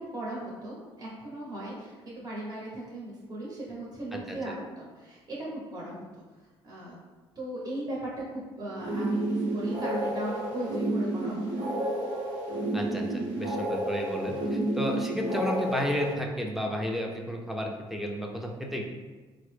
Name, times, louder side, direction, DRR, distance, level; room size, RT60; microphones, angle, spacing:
voice 1, 0.0-6.0 6.6-6.9 7.3-11.7, right 1 dB, 35° right, -5 dB, 0.9 m, -38 dB
sound 1, 8.8-16.1, right 1 dB, 85° right, 0.8 m, -30 dB
voice 2, 12.7-18.8, equal, ahead, 0 dB, 0.5 m, -32 dB
3.8 x 2.0 x 3.3 m, 1.3 s
cardioid pair, 95°, 11 cm